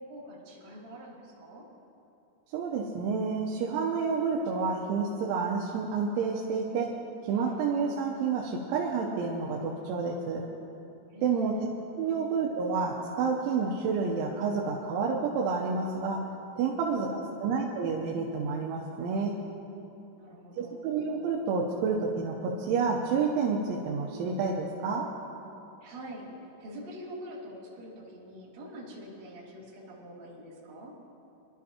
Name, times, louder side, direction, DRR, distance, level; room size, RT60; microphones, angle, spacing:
voice 1, 0.0-1.6 7.3-7.5 11.1-11.6 12.0-12.2 16.8-17.5 20.2-20.8 25.8-26.2 26.6-30.9, equal, 40° right, -7 dB, 3.1 m, -45 dB
voice 2, 2.5-10.4 11.2-11.6 12.0-16.2 16.6-19.4 20.6-25.1, right 5 dB, 80° right, -1 dB, 3.0 m, -29 dB
25.0 x 12.0 x 2.9 m, 2.9 s
omnidirectional pair, 5.9 m